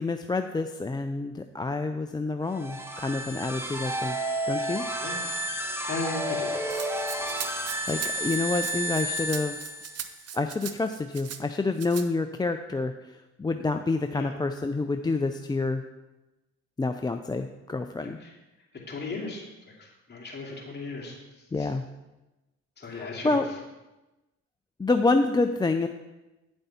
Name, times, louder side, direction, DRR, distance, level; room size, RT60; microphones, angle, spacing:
voice 1, 0.0-4.2 4.5-4.8 7.9-9.6 10.3-12.9 13.4-15.8 16.8-18.2 21.5-21.8 22.9-23.5 24.8-25.9, left 3 dB, 15° left, 6 dB, 0.4 m, -28 dB
sound 1, 2.5-10.1, right 1 dB, 10° right, 1.2 m, -31 dB
voice 2, 5.8-6.6 7.2-7.4 14.1-14.3 18.0-18.3 18.9-19.4 19.8-21.2 21.6-21.7 22.8-23.4, left 3 dB, 35° left, -2 dB, 2.7 m, -36 dB
Rattle (instrument), 6.7-11.4 11.8-12.1, right 9 dB, 55° right, 0.7 m, -40 dB
9.2 x 7.8 x 4.2 m, 1.0 s
cardioid pair, 90°, 30 cm